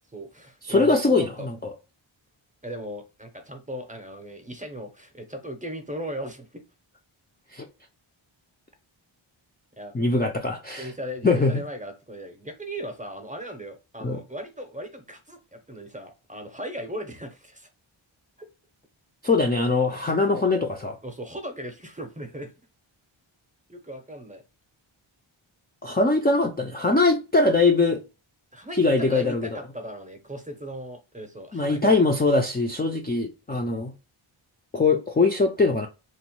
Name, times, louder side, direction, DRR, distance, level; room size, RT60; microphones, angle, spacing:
voice 1, 0.1-1.5 2.6-6.6 9.8-9.9 10.8-17.7 18.4-18.5 19.8-19.9 21.0-22.5 23.7-24.4 28.5-32.0, equal, 15° right, 0.7 m, -37 dB
voice 2, 0.6-1.7 7.5-7.6 9.9-10.9 11.2-11.6 14.0-14.2 19.2-21.0 25.8-28.0 28.8-29.6 31.5-33.9 34.7-35.9, left 3 dB, 20° left, 0.4 m, -22 dB
3.0 x 2.1 x 2.9 m
wide cardioid pair, 70°, 50 cm